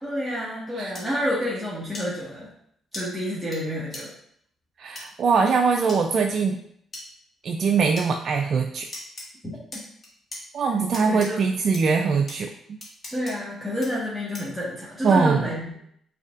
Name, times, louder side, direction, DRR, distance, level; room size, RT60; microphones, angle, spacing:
voice 1, 0.0-2.5 2.9-4.1 9.7-9.8 11.1-11.4 13.1-15.8, equal, 5° left, -8 dB, 1.4 m, -29 dB
sound 1, 0.9-1.0 1.9-2.1 2.9-3.0 3.5-3.6 3.9-4.0 4.9-5.0 5.9-6.0 6.9-7.0 8.0-8.1 8.9-9.2 9.7-10.4 10.9-11.3 11.7-11.8 12.3-12.4 12.8-13.3 13.8-13.9 14.3-14.6, left 1 dB, 35° left, 1.7 m, -37 dB
voice 2, 4.8-6.6 7.4-8.9 10.5-12.8 15.0-15.4, right 5 dB, 55° right, 2 dB, 0.4 m, -22 dB
5.7 x 3.3 x 2.4 m, 0.68 s
cardioid pair, 90°, 0 cm